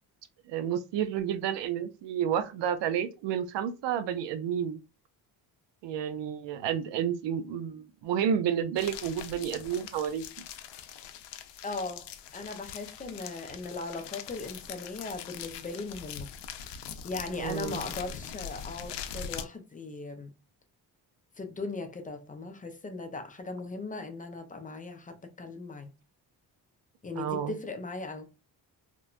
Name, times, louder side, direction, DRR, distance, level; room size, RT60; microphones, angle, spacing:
voice 1, 0.5-4.8 5.8-10.2 17.3-17.8 27.1-27.5, right 9 dB, 80° right, 0.5 m, -30 dB
sound 1, 8.8-19.5, left 8 dB, 75° left, 0.5 m, -42 dB
voice 2, 11.6-16.3 16.8-20.3 21.4-25.9 27.0-28.3, left 3 dB, 20° left, 0.4 m, -38 dB
3.0 x 2.1 x 2.4 m
cardioid pair, 105°, 43 cm